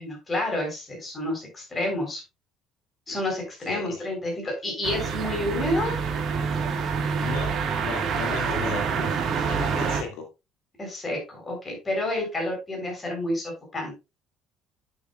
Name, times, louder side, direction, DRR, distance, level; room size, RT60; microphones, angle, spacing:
voice 1, 0.0-2.2 3.1-6.0 10.8-13.9, left 1 dB, 20° left, 3.9 m, -29 dB
voice 2, 3.6-4.0 7.2-9.1 9.5-10.3, left 5 dB, 85° left, 2.2 m, -35 dB
sound 1, 4.8-10.0, right 6 dB, 45° right, 1.6 m, -27 dB
10.5 x 6.7 x 2.4 m
cardioid pair, 155°, 0 cm